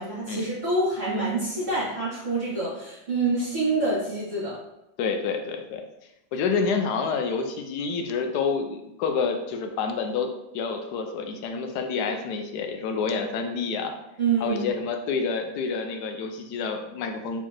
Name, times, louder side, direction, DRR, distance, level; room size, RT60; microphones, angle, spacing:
voice 1, 0.0-4.6 14.2-14.6, right 3 dB, 40° right, -10 dB, 2.1 m, -26 dB
voice 2, 5.0-5.8 6.3-13.9 14.4-17.4, left 5 dB, 70° left, 5 dB, 1.0 m, -28 dB
4.2 x 4.1 x 3.0 m, 0.86 s
omnidirectional pair, 2.1 m